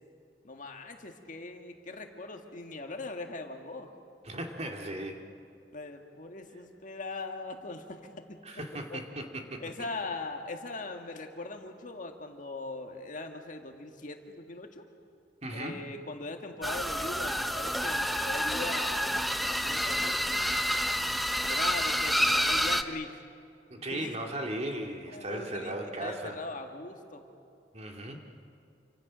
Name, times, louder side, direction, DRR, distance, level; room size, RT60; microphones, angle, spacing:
voice 1, 0.4-3.9 5.7-9.0 9.6-14.9 15.5-20.6 21.4-23.1 23.8-24.1 25.1-27.3, left 3 dB, 50° left, 4 dB, 1.8 m, -41 dB
voice 2, 4.2-5.2 8.4-9.6 15.4-15.9 23.7-26.4 27.7-28.2, right 1 dB, 40° right, 2 dB, 2.3 m, -37 dB
sound 1, 16.6-22.8, equal, ahead, 0.7 m, -29 dB
28.0 x 25.5 x 6.3 m, 2.4 s
head